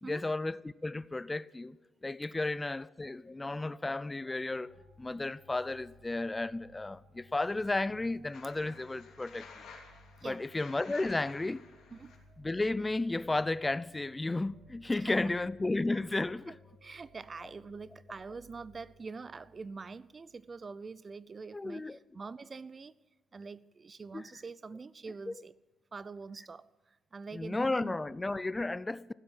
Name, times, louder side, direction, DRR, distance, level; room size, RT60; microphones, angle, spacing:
voice 1, 0.0-1.8 2.0-9.6 10.2-11.6 12.4-16.6 21.5-22.0 24.1-24.3 25.3-25.4 27.3-29.1, left 2 dB, 20° left, 0.4 m, -33 dB
sound 1, 4.5-20.8, equal, 65° right, 1.6 m, -60 dB
sound 2, 8.3-12.2, left 5 dB, 65° left, 2.9 m, -53 dB
voice 2, 16.8-22.9 23.3-25.5 25.9-28.1, right 4 dB, 40° right, 0.5 m, -45 dB
16.0 x 7.7 x 8.9 m
hypercardioid pair, 50°, 0 cm